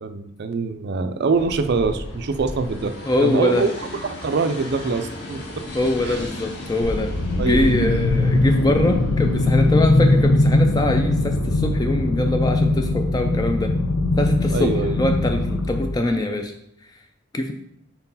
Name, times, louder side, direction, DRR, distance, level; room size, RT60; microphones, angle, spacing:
voice 1, 0.0-2.9 3.2-5.6 6.0-6.2 7.4-7.6 14.5-15.0, right 4 dB, 55° right, 8 dB, 0.4 m, -24 dB
sound 1, 1.3-10.2, left 1 dB, 55° left, 1.6 m, -34 dB
voice 2, 3.0-3.7 5.7-13.7 14.2-16.5 17.3-17.5, left 1 dB, 20° left, 5 dB, 0.3 m, -23 dB
sound 2, 6.8-15.9, left 2 dB, 90° left, 0.7 m, -20 dB
4.5 x 3.9 x 5.4 m, 0.78 s
head